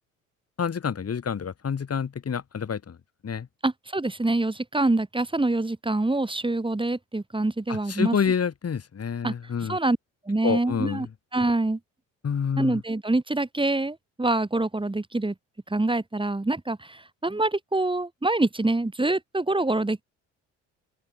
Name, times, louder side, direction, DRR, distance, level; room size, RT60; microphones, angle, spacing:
voice 1, 0.6-3.0 3.2-3.5 7.7-9.8 10.4-11.1 12.2-12.8, left 7 dB, 40° left, 5.7 m, -28 dB
voice 2, 3.6-8.3 9.2-9.3 9.7-10.0 10.3-11.8 12.6-15.3 15.7-20.0, right 2 dB, 15° right, 4.3 m, -25 dB
open air
hypercardioid pair, 60°, 36 cm